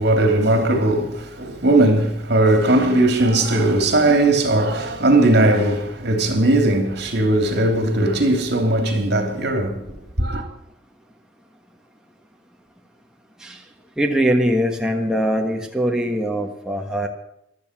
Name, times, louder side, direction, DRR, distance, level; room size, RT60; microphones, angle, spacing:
voice 1, 0.0-9.9 10.2-10.4, right 1 dB, 55° right, 3.0 m, -18 dB
voice 2, 14.0-17.1, equal, 5° right, 1.4 m, -22 dB
15.0 x 12.0 x 6.0 m
head